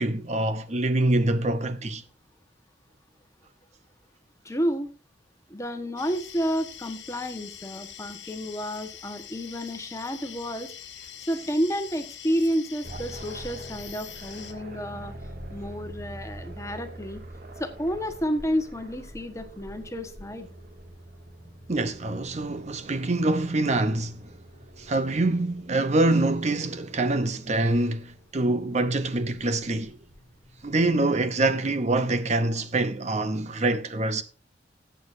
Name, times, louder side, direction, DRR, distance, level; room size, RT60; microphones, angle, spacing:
voice 1, 0.0-2.0 21.7-24.3 24.8-30.0 30.6-34.2, right 2 dB, 40° right, 0.7 m, -25 dB
voice 2, 4.4-4.9 5.5-10.7 11.3-15.1 15.5-17.2 17.6-20.5, equal, 15° left, 1.3 m, -30 dB
sound 1, 6.0-14.5, left 10 dB, 90° left, 1.3 m, -44 dB
sound 2, 12.8-31.4, right 1 dB, 60° right, 2.1 m, -45 dB
17.5 x 7.9 x 2.6 m
head